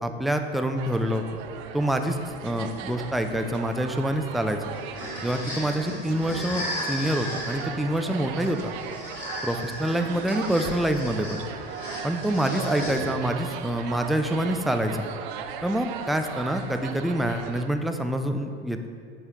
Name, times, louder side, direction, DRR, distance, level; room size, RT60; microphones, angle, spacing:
voice 1, 0.0-1.2 1.7-2.2 2.4-4.6 5.2-8.7 9.4-11.4 12.0-15.1 15.6-18.9, right 1 dB, ahead, 6 dB, 0.3 m, -26 dB
sound 1, 0.8-17.7, right 8 dB, 50° right, 0.6 m, -38 dB
sound 2, 4.7-13.4, equal, 85° left, 2.0 m, -35 dB
8.9 x 6.2 x 3.5 m, 2.2 s
figure-of-eight pair, 80°, 31 cm